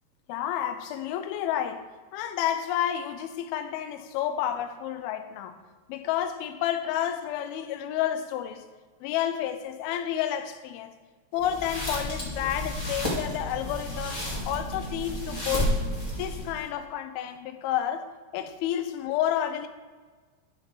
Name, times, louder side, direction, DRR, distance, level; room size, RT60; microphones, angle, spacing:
voice 1, 0.3-5.6 5.9-8.6 9.0-10.9 11.3-15.8 16.2-19.7, left 10 dB, 90° left, 2.2 m, -30 dB
sound 1, 11.4-16.6, equal, 35° left, 0.6 m, -31 dB
11.5 x 6.0 x 3.9 m
omnidirectional pair, 5.0 m